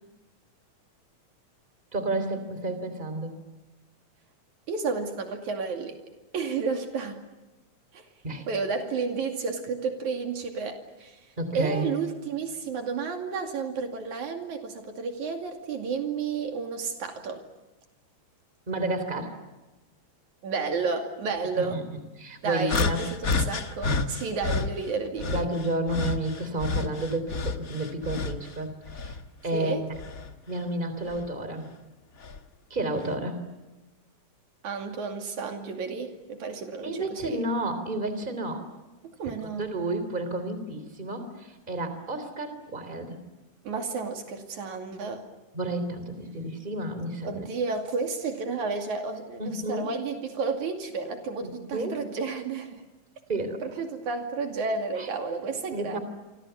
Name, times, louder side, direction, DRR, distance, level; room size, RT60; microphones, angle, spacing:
voice 1, 1.9-3.4 8.2-8.5 11.4-11.9 18.7-19.4 21.6-23.1 25.3-29.9 30.5-31.7 32.7-33.4 36.8-38.7 39.6-43.2 45.5-47.5 49.4-49.9 51.4-52.0 53.3-53.6 55.0-55.1 55.7-56.0, right 2 dB, 15° right, 9 dB, 3.4 m, -31 dB
voice 2, 4.7-6.0 6.3-7.2 7.9-8.1 8.5-11.2 11.5-17.4 20.4-21.8 22.4-25.5 29.5-29.8 34.6-37.4 39.2-39.7 43.7-45.2 47.2-52.8 53.6-56.0, right 4 dB, 75° right, 4 dB, 3.8 m, -31 dB
sound 1, 22.7-24.7 25.2-28.5 28.9-30.3 31.1-31.3 32.2-32.4, left 4 dB, 40° left, 1.2 m, -30 dB
28.0 x 25.5 x 7.0 m, 1.1 s
omnidirectional pair, 3.4 m